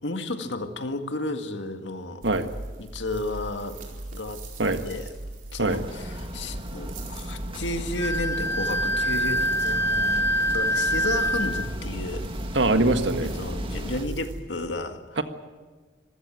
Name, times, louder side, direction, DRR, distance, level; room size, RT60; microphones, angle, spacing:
voice 1, 0.0-2.2 2.8-3.8 4.1-4.4 4.8-5.1 5.5-12.3 13.2-15.0, left 2 dB, 75° left, 6 dB, 2.0 m, -32 dB
sound 1, 2.2-14.4, right 1 dB, 50° right, 4.5 m, -40 dB
sound 2, 5.7-14.0, equal, 30° right, 2.0 m, -35 dB
Wind instrument woodwind instrument, 8.0-11.7, equal, 15° left, 1.0 m, -25 dB
voice 2, 12.5-13.3 15.2-15.3, right 2 dB, 75° right, 8 dB, 1.7 m, -22 dB
26.5 x 15.0 x 9.2 m, 1.4 s
head